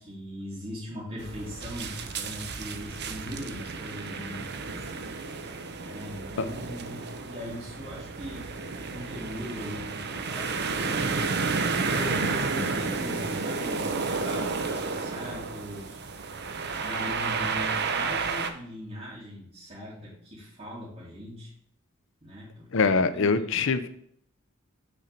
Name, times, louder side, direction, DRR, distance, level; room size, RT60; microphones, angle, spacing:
voice 1, 0.0-5.1 5.8-8.5 8.9-11.3 11.8-16.0 16.4-21.5 22.2-23.4, equal, 35° right, -11 dB, 2.7 m, -40 dB
sound 1, 1.2-18.5, right 4 dB, 55° right, 0.8 m, -31 dB
voice 2, 22.7-23.9, left 4 dB, 65° left, 11 dB, 0.6 m, -23 dB
6.4 x 4.4 x 6.6 m, 0.66 s
head